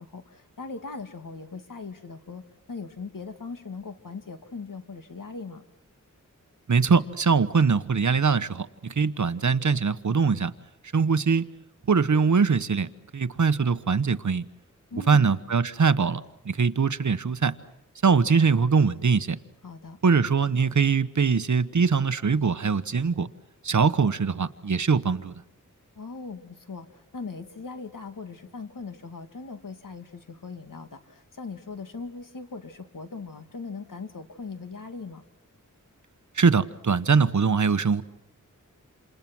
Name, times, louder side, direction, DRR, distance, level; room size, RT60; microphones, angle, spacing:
voice 1, 0.0-5.6 14.9-15.2 19.6-20.0 26.0-35.2, left 4 dB, 80° left, 7 dB, 2.3 m, -39 dB
voice 2, 6.7-10.5 10.9-11.4 11.9-14.4 15.1-17.6 18.0-19.4 20.0-23.3 23.6-25.3 36.3-38.0, right 5 dB, 65° right, 13 dB, 1.1 m, -22 dB
28.5 x 28.5 x 6.2 m, 0.84 s
wide cardioid pair, 80°, 32 cm